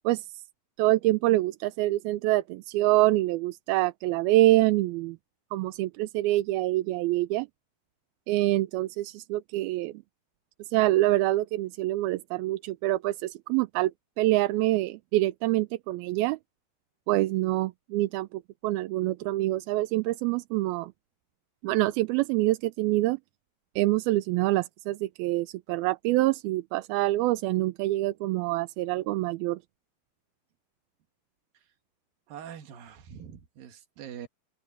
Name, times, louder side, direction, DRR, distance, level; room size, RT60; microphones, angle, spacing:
voice 1, 0.8-5.2 5.5-7.5 8.3-10.0 10.7-13.9 14.2-16.4 17.1-20.9 21.6-23.2 23.8-29.6, right 17 dB, 85° right, 2.6 m, -26 dB
voice 2, 32.3-34.3, right 9 dB, 70° right, 3.4 m, -43 dB
open air
omnidirectional pair, 4.2 m